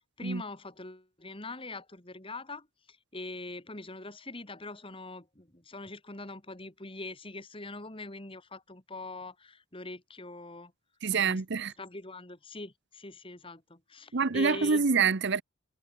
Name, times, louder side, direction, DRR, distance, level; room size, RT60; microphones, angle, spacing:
voice 1, 0.2-10.7 11.1-11.4 11.8-14.8, left 2 dB, 25° left, 2.6 m, -43 dB
voice 2, 11.0-11.7 14.1-15.4, right 5 dB, 50° right, 0.8 m, -26 dB
head